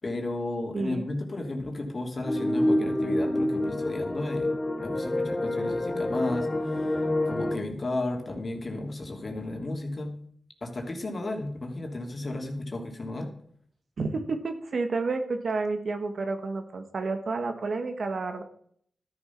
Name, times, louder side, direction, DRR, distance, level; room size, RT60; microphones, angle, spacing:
voice 1, 0.0-4.5 4.8-10.1 10.6-13.3, left 2 dB, 45° left, 3 dB, 2.9 m, -33 dB
sound 1, 2.2-7.6, left 1 dB, 30° left, 3.1 m, -27 dB
voice 2, 14.0-18.4, right 3 dB, 65° right, 7 dB, 1.6 m, -30 dB
12.5 x 7.8 x 6.0 m, 0.62 s
cardioid pair, 55°, 0 cm